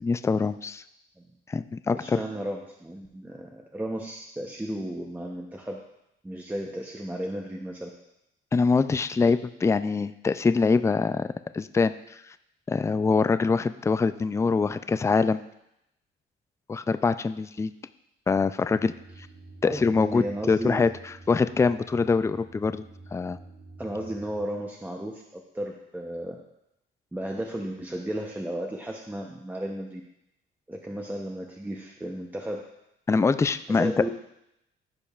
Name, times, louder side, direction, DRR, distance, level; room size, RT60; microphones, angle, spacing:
voice 1, 0.0-0.8 1.5-2.2 8.5-11.3 11.5-12.2 12.7-15.4 16.7-17.7 18.3-18.9 19.6-20.9 21.3-22.8 23.1-23.4 33.1-33.9, left 4 dB, 15° left, 12 dB, 0.3 m, -24 dB
voice 2, 1.9-5.8 6.2-7.9 19.6-20.8 23.8-26.4 27.1-30.0 30.7-32.6 33.7-34.1, right 1 dB, 10° right, 0 dB, 0.7 m, -34 dB
sound 1, 18.6-24.5, right 2 dB, 30° right, 2.5 m, -48 dB
14.5 x 5.2 x 2.4 m, 0.82 s
cardioid pair, 90°, 20 cm